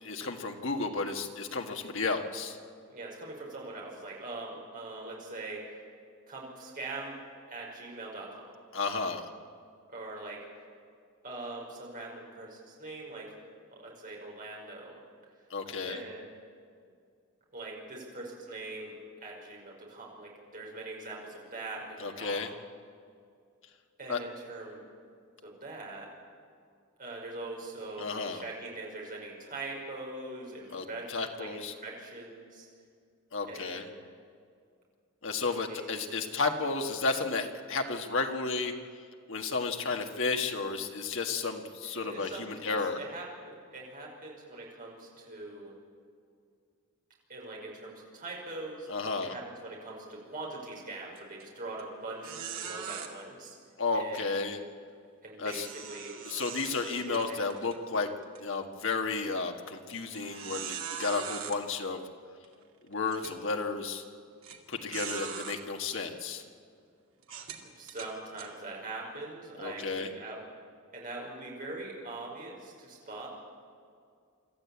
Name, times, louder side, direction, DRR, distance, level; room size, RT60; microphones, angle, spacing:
voice 1, 0.0-2.6 8.7-9.2 15.5-16.0 22.0-22.5 24.1-24.2 28.0-28.4 30.7-31.7 33.3-33.9 35.2-38.7 39.3-43.0 48.9-49.3 53.8-54.6 55.4-55.7 56.3-58.1 58.4-62.0 62.9-64.0 64.7-66.4 69.6-70.1, left 4 dB, 60° left, 4 dB, 1.8 m, -32 dB
voice 2, 2.9-5.8 6.3-7.2 7.5-8.5 9.9-10.4 11.2-13.4 13.7-15.0 15.8-16.3 17.5-22.4 24.0-24.8 25.4-26.1 27.0-32.7 33.5-33.9 35.7-36.0 41.9-45.8 47.3-48.9 49.2-53.6 53.9-54.4 55.2-56.1 56.8-57.4 67.6-70.4 70.9-73.3, right 2 dB, 40° right, -2 dB, 5.5 m, -42 dB
sound 1, 51.2-51.4 51.8-51.9 52.2-53.1 55.4-57.8 58.2-58.4 59.0-59.1 60.1-61.6 62.4-62.5 63.1-63.4 64.4-64.6 64.9-65.6 66.3-66.4 67.2-68.5, right 7 dB, 70° right, 2.3 m, -41 dB
25.0 x 14.0 x 8.7 m, 2.3 s
head